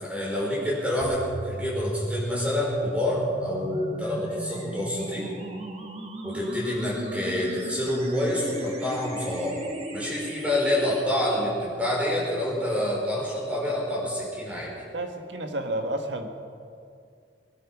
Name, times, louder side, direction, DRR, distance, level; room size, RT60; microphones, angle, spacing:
voice 1, 0.0-5.3 6.2-9.7 9.9-14.7, left 1 dB, 5° right, -5 dB, 5.0 m, -27 dB
sound 1, 1.0-11.0, right 1 dB, 35° right, 1.6 m, -36 dB
voice 2, 14.9-16.3, right 1 dB, 80° right, 5 dB, 1.5 m, -31 dB
21.5 x 11.0 x 6.1 m, 2.3 s
head